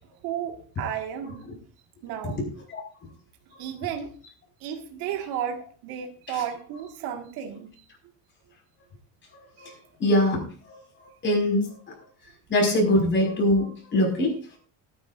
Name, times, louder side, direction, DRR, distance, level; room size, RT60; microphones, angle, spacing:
voice 1, 0.2-1.5 2.0-2.4 3.6-4.1 4.6-7.7, right 9 dB, 60° right, 3 dB, 1.9 m, -33 dB
voice 2, 9.3-9.7 10.0-11.7 12.5-14.6, left 1 dB, 25° left, 0 dB, 5.4 m, -24 dB
19.5 x 10.0 x 2.6 m, 0.41 s
cardioid pair, 165°, 43 cm